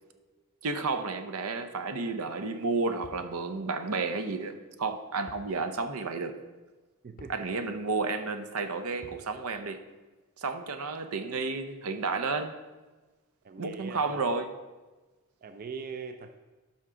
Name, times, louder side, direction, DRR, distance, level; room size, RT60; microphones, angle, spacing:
voice 1, 0.6-6.3 7.3-9.8 10.4-12.5 13.6-14.5, right 4 dB, 80° right, 8 dB, 0.7 m, -31 dB
sound 1, 3.0-3.3 5.3-5.5 5.9-6.0 7.2-7.5 9.0-9.3, left 2 dB, 40° left, 0.6 m, -50 dB
voice 2, 7.0-7.5 13.4-14.4 15.4-16.4, right 5 dB, 40° right, 7 dB, 0.4 m, -42 dB
11.5 x 5.7 x 3.7 m, 1.2 s
head